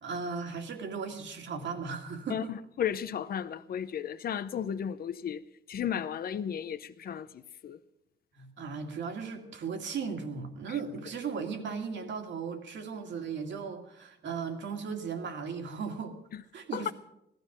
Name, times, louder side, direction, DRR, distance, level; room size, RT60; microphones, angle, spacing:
voice 1, 0.0-2.5 8.4-16.1 16.5-16.9, right 5 dB, 70° right, 2.3 m, -37 dB
voice 2, 2.8-5.4 5.7-7.8 16.3-16.4 16.7-16.9, left 8 dB, 50° left, 0.7 m, -34 dB
17.5 x 13.0 x 5.9 m
wide cardioid pair, 150°, 20 cm